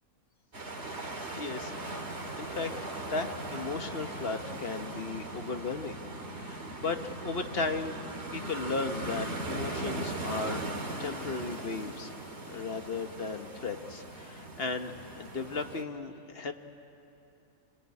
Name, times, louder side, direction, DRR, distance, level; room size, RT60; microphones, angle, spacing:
sound 1, 0.5-15.8, right 2 dB, 50° right, 2.6 m, -39 dB
voice 1, 1.0-1.9 2.4-2.7 3.1-6.0 6.3-8.0 8.3-10.6 11.0-12.1 12.5-16.5, left 4 dB, 45° left, 7 dB, 1.2 m, -36 dB
26.5 x 21.5 x 9.6 m, 2.8 s
omnidirectional pair, 1.5 m